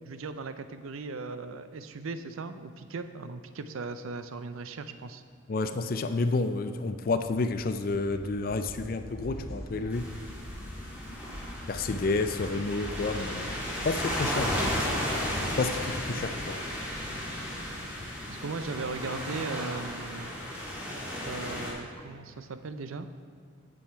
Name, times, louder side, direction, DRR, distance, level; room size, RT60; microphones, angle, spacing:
voice 1, 0.0-5.2 18.3-20.3 21.3-23.1, right 3 dB, 80° right, 10 dB, 0.5 m, -38 dB
voice 2, 5.5-10.1 11.7-15.1 15.6-16.6, left 3 dB, 45° left, 9 dB, 0.4 m, -30 dB
sound 1, 7.3-18.0, equal, 25° left, 1.7 m, -44 dB
sound 2, 9.9-21.7, equal, 5° right, 1.6 m, -34 dB
7.8 x 7.2 x 4.5 m, 2.2 s
head